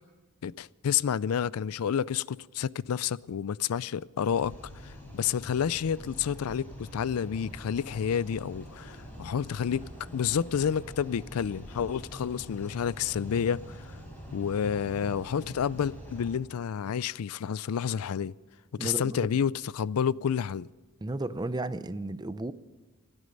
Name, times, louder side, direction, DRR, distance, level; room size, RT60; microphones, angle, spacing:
voice 1, 0.4-4.5 4.8-13.8 14.3-18.3 18.8-20.7, left 8 dB, 85° left, 0.4 m, -30 dB
sound 1, 4.3-16.3, equal, 10° left, 4.2 m, -45 dB
voice 2, 18.8-19.2 21.0-22.5, right 2 dB, 20° right, 0.5 m, -33 dB
27.0 x 9.8 x 5.3 m
head